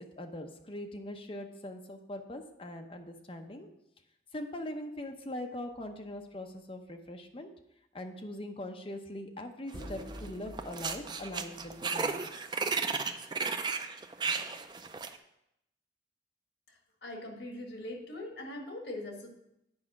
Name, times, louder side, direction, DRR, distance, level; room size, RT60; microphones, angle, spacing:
voice 1, 0.0-3.7 4.3-7.5 7.9-12.3, left 1 dB, 30° left, 4 dB, 0.7 m, -41 dB
sound 1, 5.7-6.1 9.7-12.0, equal, 5° left, 2.2 m, -47 dB
sound 2, 9.8-10.3 10.5-15.2, right 4 dB, 25° right, 0.4 m, -34 dB
voice 2, 17.0-19.3, left 1 dB, 75° left, 2 dB, 1.6 m, -41 dB
8.8 x 4.8 x 5.9 m, 0.83 s
head